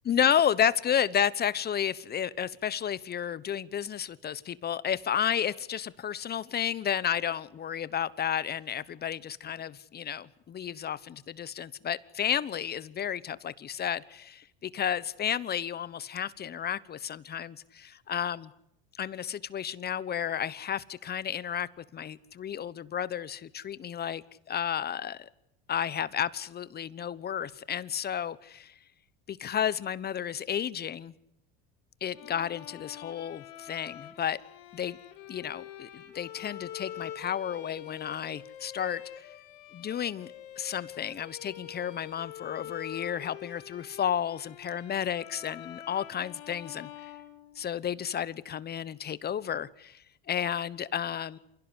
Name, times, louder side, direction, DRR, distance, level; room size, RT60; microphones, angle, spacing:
voice 1, 0.1-18.5 19.0-24.2 24.5-25.3 25.7-28.7 29.3-31.1 32.0-34.4 34.7-35.0 35.3-39.0 39.7-40.3 40.6-46.9 47.6-50.0 50.3-51.4, left 9 dB, 35° left, 1.1 m, -32 dB
Bowed string instrument, 32.1-48.0, left 11 dB, 70° left, 5.5 m, -45 dB
28.5 x 16.5 x 10.0 m
supercardioid pair, 100°, 29 cm